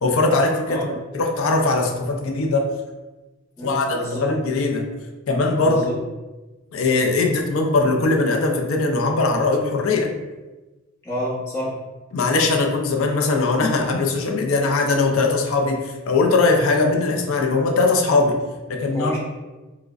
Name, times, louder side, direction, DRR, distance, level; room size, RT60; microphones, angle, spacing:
voice 1, 0.0-0.8 1.1-2.7 3.6-4.9 5.3-5.8 6.7-10.1 12.1-18.4 18.7-19.1, left 3 dB, 80° left, 3 dB, 0.4 m, -20 dB
voice 2, 3.6-4.2 5.6-5.9 11.0-11.7 18.9-19.2, left 1 dB, 15° left, -7 dB, 0.9 m, -28 dB
4.6 x 2.1 x 2.4 m, 1.1 s
head